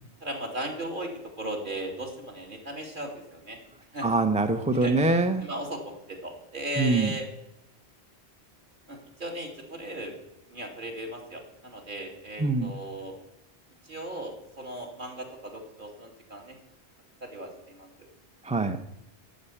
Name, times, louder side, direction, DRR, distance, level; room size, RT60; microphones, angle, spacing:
voice 1, 0.2-1.1 1.4-3.6 3.9-4.1 4.8-5.0 5.4-7.3 8.9-10.2 10.5-13.1 13.8-16.6 17.2-17.9 18.6-18.7, right 1 dB, 45° right, 0 dB, 2.9 m, -37 dB
voice 2, 4.0-5.4 6.8-7.1 12.4-12.7 18.4-18.8, right 2 dB, 10° right, 7 dB, 0.5 m, -24 dB
10.5 x 7.9 x 9.8 m, 0.85 s
omnidirectional pair, 1.1 m